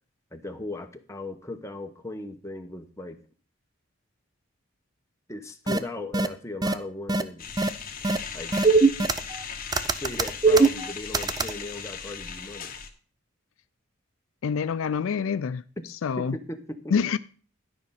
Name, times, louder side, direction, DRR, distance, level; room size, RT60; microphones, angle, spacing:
voice 1, 0.3-3.2 5.3-7.5 8.3-8.6 10.0-12.7 15.8-15.9 16.2-16.9, left 2 dB, 15° left, 0.8 m, -37 dB
sound 1, 5.7-5.8 6.1-6.3 6.6-6.7 7.1-7.2 7.6-7.7 8.0-8.2 8.5-9.4 9.7-11.5, right 3 dB, 20° right, 0.4 m, -21 dB
sound 2, 7.4-12.9, left 6 dB, 40° left, 1.1 m, -38 dB
voice 2, 14.4-15.6 16.0-16.4 16.9-17.2, left 6 dB, 75° left, 0.4 m, -26 dB
12.0 x 5.2 x 5.6 m
head